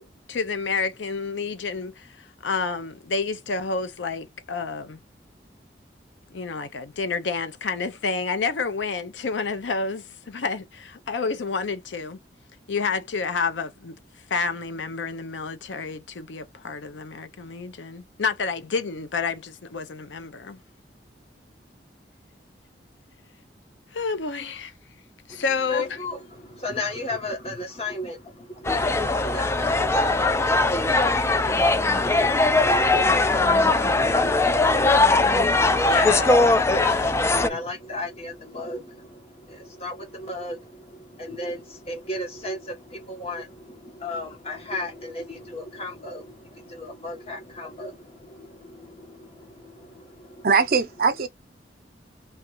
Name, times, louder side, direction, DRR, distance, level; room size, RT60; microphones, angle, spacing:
voice 1, 0.0-5.0 6.3-12.2 12.7-14.0 14.3-20.6 23.9-24.7 25.3-26.0 35.4-35.5 35.8-36.5 36.7-37.4, left 4 dB, 85° left, 0.6 m, -29 dB
voice 2, 25.3-50.5, left 1 dB, 35° left, 1.1 m, -36 dB
sound 1, 28.7-37.5, left 2 dB, 15° left, 0.3 m, -20 dB
voice 3, 50.4-51.3, right 5 dB, 55° right, 0.6 m, -21 dB
3.1 x 2.4 x 2.9 m
head